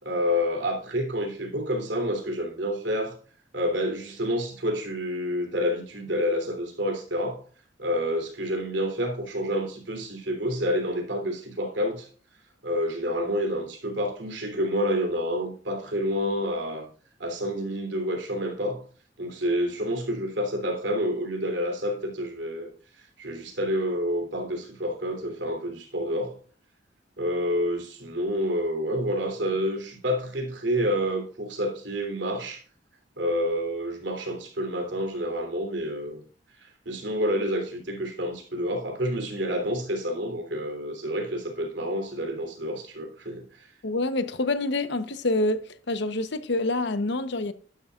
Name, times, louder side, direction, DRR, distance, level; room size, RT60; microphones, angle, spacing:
voice 1, 0.0-3.1 3.5-7.4 7.8-12.1 12.6-16.9 17.2-18.8 19.2-22.7 23.0-26.3 27.2-32.6 33.2-36.2 36.6-43.7, equal, 65° right, 3.1 m, -28 dB
voice 2, 43.8-45.6 45.9-47.5, left 2 dB, 65° left, 0.9 m, -26 dB
12.0 x 10.0 x 2.4 m
head